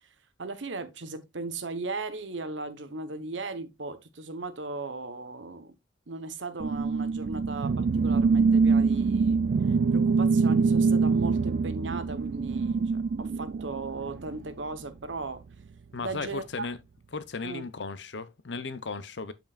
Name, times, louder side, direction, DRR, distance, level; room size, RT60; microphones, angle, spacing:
voice 1, 0.4-5.7 6.1-9.4 9.7-15.4 16.0-16.7 17.4-17.6, right 3 dB, 80° right, 1.1 m, -37 dB
sound 1, 6.6-14.4, right 4 dB, 55° right, 0.3 m, -24 dB
voice 2, 15.9-16.8 17.1-19.3, left 4 dB, 70° left, 0.8 m, -36 dB
7.9 x 7.1 x 2.4 m
head